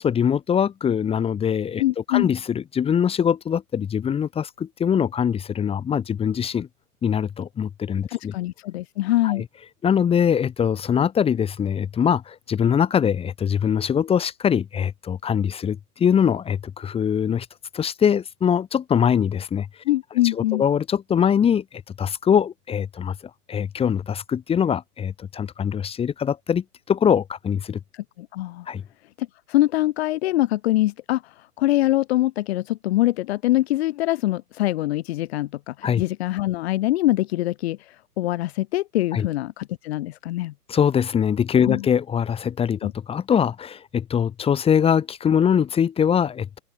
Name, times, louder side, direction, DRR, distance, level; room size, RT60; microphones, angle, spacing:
voice 1, 0.0-1.8 2.1-6.7 7.0-8.3 9.2-9.4 9.8-17.5 17.7-19.7 20.3-21.6 22.0-23.1 23.5-27.8 28.7-28.8 35.8-36.0 39.1-39.3 40.7-46.6, left 8 dB, 10° left, 2.9 m, -22 dB
voice 2, 1.8-2.3 8.1-9.4 19.9-20.6 27.9-28.7 29.2-40.5 41.6-41.9 42.8-42.9, left 16 dB, 40° left, 5.4 m, -24 dB
open air
hypercardioid pair, 135°, 47 cm